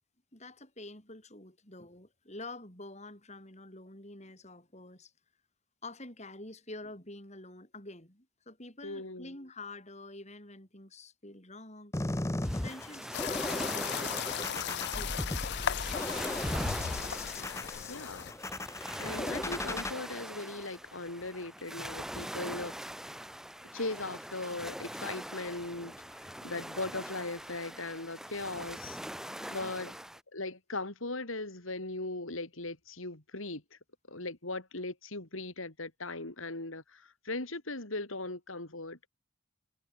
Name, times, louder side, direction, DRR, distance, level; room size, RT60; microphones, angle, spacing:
voice 1, 0.3-5.1 5.8-12.0 12.6-16.7 29.4-29.9, left 2 dB, 30° left, 7.1 m, -48 dB
voice 2, 8.8-9.3 17.9-18.3 19.0-22.8 23.7-29.0 29.5-29.9 30.3-33.6 34.1-39.1, left 2 dB, 75° left, 3.7 m, -39 dB
sound 1, 11.9-19.9, left 1 dB, 15° left, 0.7 m, -37 dB
sound 2, 12.4-30.2, equal, ahead, 2.3 m, -42 dB
sound 3, 13.1-18.3, left 9 dB, 50° left, 0.4 m, -36 dB
head